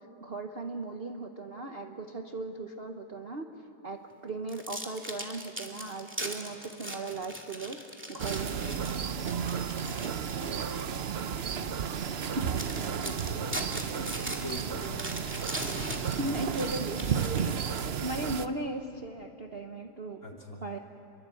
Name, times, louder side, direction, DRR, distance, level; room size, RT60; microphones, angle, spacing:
voice 1, 0.2-3.5 3.8-7.8 8.1-9.1 12.3-12.6 16.2-17.6 17.9-20.3 20.6-20.8, right 2 dB, 40° right, 4 dB, 1.0 m, -37 dB
sound 1, 4.5-10.9 11.5-11.6 12.2-12.3 12.6-18.1, equal, 5° right, 2.2 m, -40 dB
sound 2, 8.2-18.5, right 7 dB, 60° right, 0.6 m, -33 dB
voice 2, 13.1-13.8 14.4-15.2 16.2-16.4 20.2-20.6, left 1 dB, 40° left, 0 dB, 3.4 m, -42 dB
28.5 x 23.0 x 8.5 m, 2.7 s
omnidirectional pair, 2.0 m